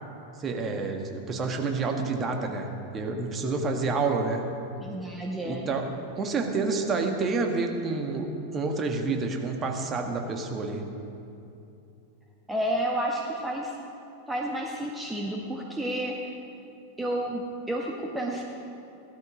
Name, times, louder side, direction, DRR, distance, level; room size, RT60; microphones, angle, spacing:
voice 1, 0.4-4.4 5.4-10.9, right 3 dB, 25° right, 3 dB, 1.6 m, -29 dB
voice 2, 4.8-5.7 12.5-13.7 14.3-16.2 17.0-18.4, right 1 dB, 10° right, -1 dB, 1.3 m, -30 dB
16.5 x 13.0 x 5.0 m, 2.7 s
figure-of-eight pair, 90°, 0 cm